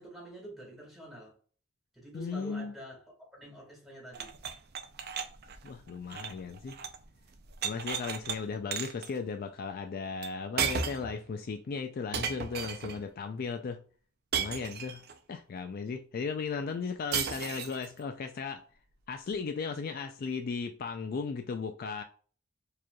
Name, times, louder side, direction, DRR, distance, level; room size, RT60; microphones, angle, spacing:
voice 1, 0.0-1.4 1.9-4.3, right 1 dB, ahead, 1.8 m, -47 dB
voice 2, 2.1-2.7 5.6-6.8 7.6-13.8 14.3-15.0 15.3-18.6 19.1-22.0, left 5 dB, 45° left, 0.3 m, -36 dB
sound 1, 4.1-7.0 7.3-8.4 8.7-9.1 10.2-10.3 10.6-11.2 12.1-13.0 14.3-15.1 17.1-17.9, right 7 dB, 50° right, 0.5 m, -35 dB
4.8 x 2.9 x 2.3 m
head